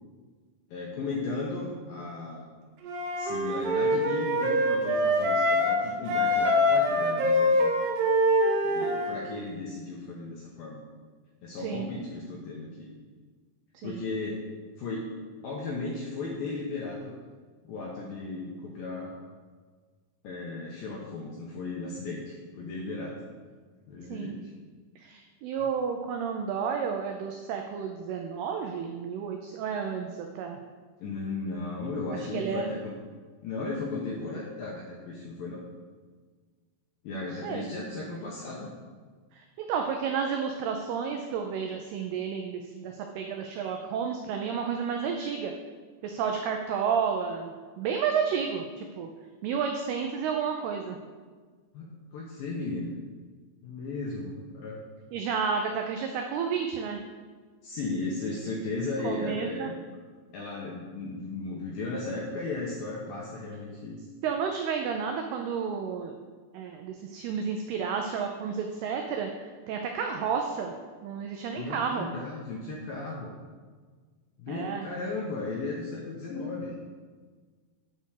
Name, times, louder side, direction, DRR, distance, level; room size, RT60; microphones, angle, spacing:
voice 1, 0.7-2.5 3.2-7.7 8.6-10.8 11.4-12.9 13.8-14.4 14.8-15.1 15.4-17.1 17.6-19.1 20.2-23.2 23.9-24.5 31.0-32.9 33.4-35.6 37.0-38.7 51.7-52.9 53.6-54.8 57.6-59.7 60.3-64.0 71.6-73.3 74.4-76.7, left 3 dB, 75° left, -2 dB, 2.1 m, -35 dB
Wind instrument woodwind instrument, 2.8-5.8 6.1-9.2, left 1 dB, 70° right, 2.2 m, -24 dB
voice 2, 25.0-30.6 32.1-32.7 37.1-37.7 39.3-45.5 46.0-49.1 49.4-51.0 55.1-57.0 59.0-59.7 64.2-66.2 66.5-70.7 71.0-72.1 74.5-74.8, right 6 dB, 85° right, 3 dB, 2.2 m, -31 dB
9.3 x 4.3 x 6.4 m, 1.5 s
omnidirectional pair, 5.3 m